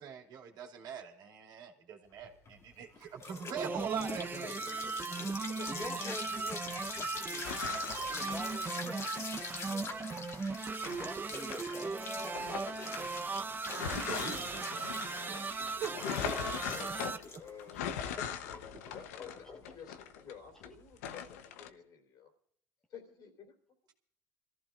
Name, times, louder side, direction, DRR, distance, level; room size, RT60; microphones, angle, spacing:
voice 1, 0.0-4.5 13.8-15.4 15.7-15.9 16.2-16.4, right 7 dB, 60° right, 1 dB, 2.6 m, -42 dB
sound 1, 2.2-21.3, left 4 dB, 40° left, 1.9 m, -45 dB
voice 2, 3.5-4.2 5.7-7.5 8.1-9.1 9.6-10.0 11.0-12.8 13.2-13.5 16.9-17.0, equal, 5° left, -1 dB, 1.3 m, -47 dB
sound 2, 3.6-17.2, right 4 dB, 25° right, 0.8 m, -38 dB
voice 3, 4.1-5.9 13.5-13.6 16.1-16.3 16.6-17.8 18.9-22.3 22.9-23.6, left 7 dB, 55° left, 4 dB, 3.7 m, -51 dB
sound 3, 7.4-9.5 10.0-11.9 12.3-20.7 21.0-21.7, left 8 dB, 85° left, 0.9 m, -41 dB
27.5 x 14.5 x 2.5 m, 0.68 s
supercardioid pair, 80°, 8 cm